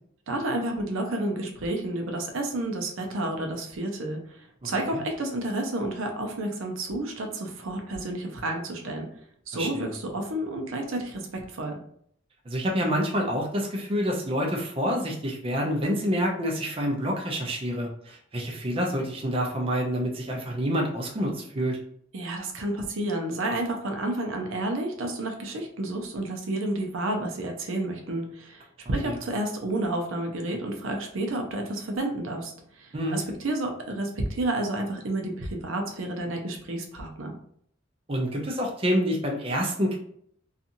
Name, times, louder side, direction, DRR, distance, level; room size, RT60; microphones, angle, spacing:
voice 1, 0.3-9.1 9.5-11.8 22.1-37.4, right 1 dB, 80° right, 3 dB, 0.6 m, -30 dB
voice 2, 9.5-9.9 12.5-21.8 29.0-29.2 32.9-33.2 38.1-39.9, equal, 30° right, 0 dB, 0.5 m, -27 dB
2.8 x 2.4 x 2.6 m, 0.65 s
head